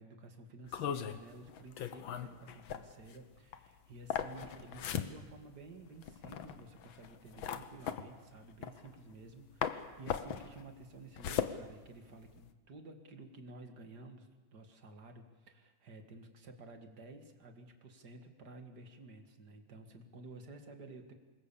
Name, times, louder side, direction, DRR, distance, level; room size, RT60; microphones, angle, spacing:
voice 1, 0.0-21.1, right 2 dB, 35° right, 5 dB, 2.2 m, -53 dB
sound 1, 0.7-9.3 9.6-12.5, left 8 dB, 75° left, 1.1 m, -39 dB
26.5 x 22.0 x 7.1 m, 1.3 s
omnidirectional pair, 3.7 m